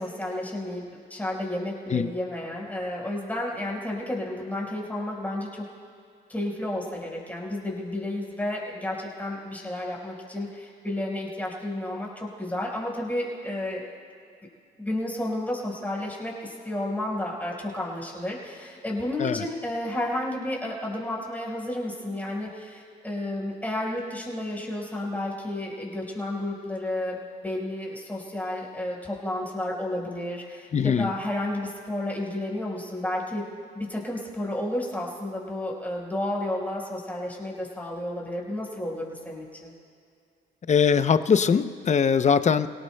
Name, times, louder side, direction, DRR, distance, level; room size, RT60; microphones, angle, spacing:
voice 1, 0.0-5.6 6.3-13.9 14.8-33.4 33.7-39.7, left 1 dB, 10° left, -3 dB, 4.5 m, -31 dB
voice 2, 30.7-31.1 40.7-42.7, left 6 dB, 35° left, 12 dB, 0.6 m, -21 dB
27.5 x 18.0 x 2.2 m, 2.3 s
cardioid pair, 90°, 20 cm